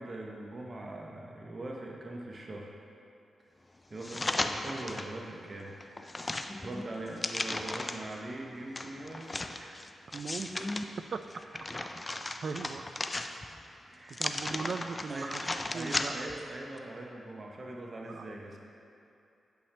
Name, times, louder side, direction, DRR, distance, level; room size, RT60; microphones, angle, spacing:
voice 1, 0.0-2.7 3.9-5.7 6.0-6.3 6.6-9.8 13.9-14.3 14.6-14.7 15.1-15.3 15.7-18.6, right 2 dB, 45° right, -1 dB, 0.8 m, -42 dB
sound 1, 4.0-5.1 5.6-8.1 8.8-10.8 11.3-13.6 14.1-16.4 16.8-16.9, left 2 dB, 25° left, 0.4 m, -36 dB
voice 2, 10.1-10.7 11.1-11.2 11.8-11.9 12.2-12.9 14.1-15.4 15.7-16.3 18.1-18.3, right 5 dB, 60° right, 10 dB, 0.3 m, -39 dB
8.4 x 5.7 x 3.3 m, 2.8 s
cardioid pair, 65°, 0 cm